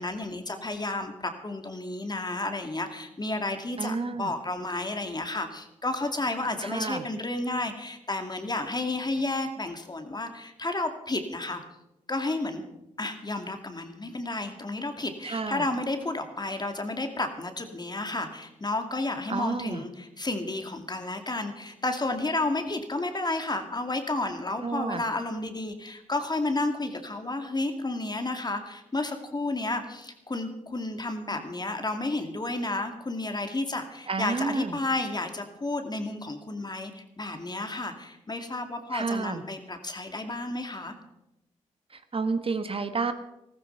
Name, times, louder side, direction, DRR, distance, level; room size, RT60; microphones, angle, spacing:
voice 1, 0.0-11.6 12.1-12.6 13.0-40.9, left 2 dB, 30° left, 6 dB, 2.4 m, -31 dB
voice 2, 3.8-4.3 6.6-7.0 15.2-15.7 19.3-19.8 24.6-25.0 34.1-34.8 38.9-39.4 41.9-43.1, right 4 dB, 45° right, 10 dB, 1.3 m, -30 dB
14.5 x 14.0 x 5.7 m, 0.91 s
supercardioid pair, 40°, 13 cm